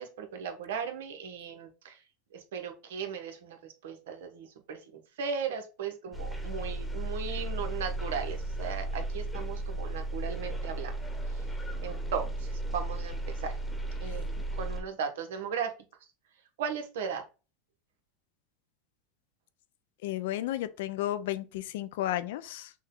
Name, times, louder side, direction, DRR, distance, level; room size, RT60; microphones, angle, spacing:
voice 1, 0.0-2.0 2.3-11.0 11.8-13.5 14.0-14.2 14.5-15.7 16.6-17.2, right 6 dB, 80° right, 1.0 m, -37 dB
sound 1, 6.1-14.8, right 2 dB, 10° left, 1.0 m, -35 dB
voice 2, 20.0-22.7, left 13 dB, 75° left, 0.5 m, -33 dB
6.1 x 2.2 x 3.7 m
supercardioid pair, 110°, 0 cm